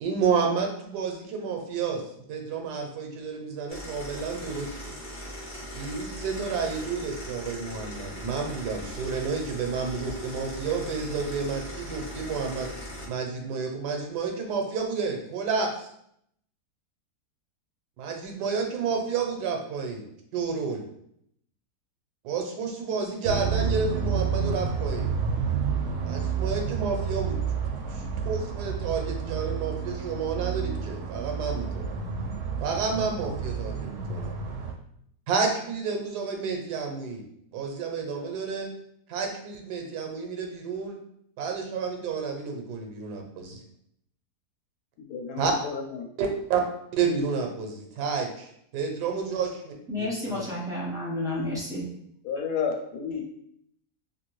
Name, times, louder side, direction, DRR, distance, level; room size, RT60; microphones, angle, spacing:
voice 1, 0.0-2.0 2.3-5.0 5.7-12.7 13.1-15.9 18.0-20.0 20.3-20.8 22.2-25.1 26.0-27.4 27.9-32.0 32.6-34.3 35.3-37.2 37.5-38.7 39.1-41.0 41.4-43.6 45.4-45.5 46.2-46.6 46.9-50.1 50.3-50.4, right 5 dB, 90° right, 3 dB, 1.2 m, -30 dB
sound 1, 3.7-13.1, equal, 45° left, 0.6 m, -39 dB
sound 2, 23.2-34.7, right 6 dB, 70° right, 0.7 m, -30 dB
voice 2, 45.0-46.1 52.2-53.3, left 6 dB, 75° left, 2 dB, 1.1 m, -31 dB
voice 3, 49.9-51.9, left 1 dB, 5° right, -7 dB, 0.4 m, -31 dB
2.9 x 2.6 x 3.0 m, 0.71 s
omnidirectional pair, 1.7 m